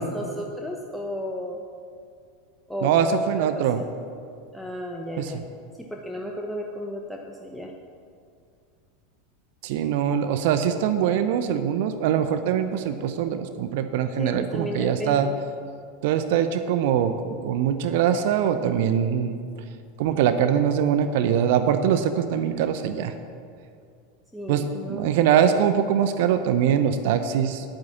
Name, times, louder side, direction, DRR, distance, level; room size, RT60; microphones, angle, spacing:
voice 1, 0.0-1.6 2.7-3.2 3.5-3.9 4.5-5.4 5.9-7.7 14.2-15.3 24.3-25.2, equal, ahead, -1 dB, 1.1 m, -33 dB
voice 2, 2.8-3.8 5.2-5.3 9.6-15.3 16.0-17.2 17.4-19.3 20.0-23.1 24.5-27.6, right 8 dB, 55° right, 9 dB, 0.7 m, -23 dB
10.5 x 9.1 x 7.1 m, 2.3 s
figure-of-eight pair, 85°, 0 cm